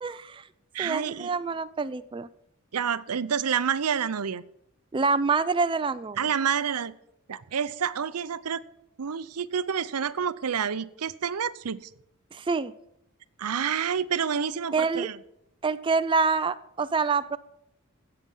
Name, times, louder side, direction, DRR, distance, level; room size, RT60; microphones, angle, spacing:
voice 1, 0.0-0.4 0.8-2.3 4.9-6.2 12.3-12.7 14.7-15.1 15.6-17.4, right 4 dB, 20° right, 12 dB, 0.3 m, -26 dB
voice 2, 0.7-1.3 2.7-4.4 6.2-6.9 7.3-8.6 9.0-11.9 13.4-15.2, right 7 dB, 90° right, 16 dB, 0.6 m, -28 dB
16.0 x 6.8 x 5.5 m, 0.81 s
head